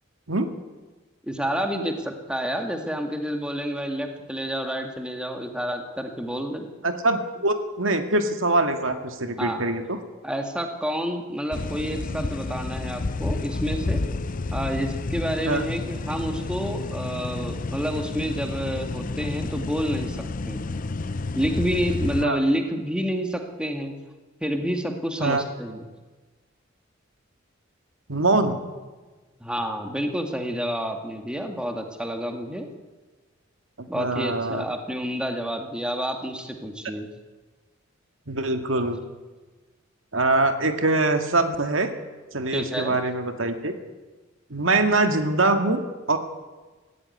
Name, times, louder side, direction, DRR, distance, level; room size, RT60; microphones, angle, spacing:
voice 1, 1.2-6.7 9.4-9.7 10.2-14.0 14.5-20.2 20.5-20.8 21.4-23.9 24.4-25.9 29.4-32.7 33.9-37.1 42.5-43.0, equal, 5° right, 4 dB, 2.1 m, -29 dB
voice 2, 6.8-10.0 15.5-15.6 22.2-22.4 25.2-25.4 28.1-28.6 33.8-34.6 38.3-39.0 40.1-41.9 42.3-43.7 44.5-46.2, right 2 dB, 85° right, 7 dB, 2.0 m, -23 dB
sound 1, 11.5-22.3, left 3 dB, 45° left, 0.7 m, -30 dB
16.5 x 16.0 x 9.7 m, 1.3 s
head